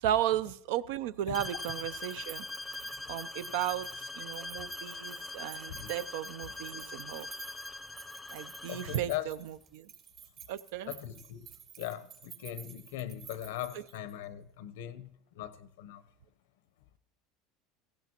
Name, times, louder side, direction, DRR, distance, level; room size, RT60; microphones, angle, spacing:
voice 1, 0.0-2.5 3.1-7.3 8.3-9.9 10.5-10.9 13.7-13.8, right 12 dB, 80° right, 0.5 m, -35 dB
sound 1, 1.2-14.2, right 9 dB, 45° right, 4.1 m, -52 dB
sound 2, 1.3-9.1, left 2 dB, 10° left, 0.6 m, -42 dB
voice 2, 8.7-9.3 10.9-11.5 11.8-15.1 15.3-16.0, left 12 dB, 85° left, 0.8 m, -40 dB
17.0 x 15.5 x 2.9 m
supercardioid pair, 115°, 0 cm